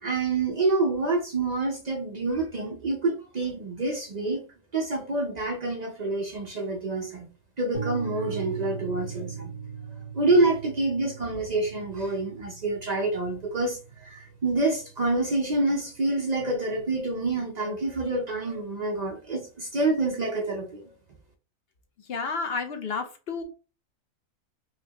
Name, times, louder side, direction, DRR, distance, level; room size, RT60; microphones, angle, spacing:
voice 1, 0.0-4.4 4.7-7.3 7.6-9.5 10.1-20.9, right 2 dB, 50° right, 0.5 m, -27 dB
sound 1, 7.7-15.6, right 5 dB, 25° left, 1.1 m, -39 dB
voice 2, 22.1-23.4, left 4 dB, 55° left, 0.8 m, -31 dB
4.8 x 2.3 x 2.8 m
omnidirectional pair, 1.4 m